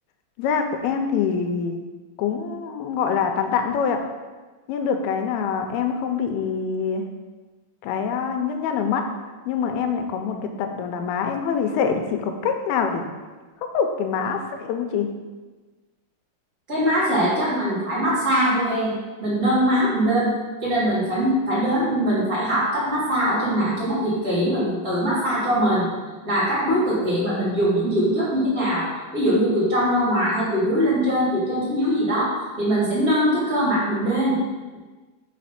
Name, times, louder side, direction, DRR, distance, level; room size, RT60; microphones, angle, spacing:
voice 1, 0.4-1.8 2.2-4.0 4.7-7.1 7.8-9.1 9.5-13.1 13.6-15.1, left 6 dB, 90° left, 5 dB, 2.5 m, -25 dB
voice 2, 16.7-18.9 19.2-20.3 20.6-25.9 26.2-28.9 29.1-32.3 32.6-34.4, equal, 25° right, -8 dB, 2.3 m, -22 dB
5.1 x 4.9 x 5.7 m, 1.3 s
omnidirectional pair, 4.4 m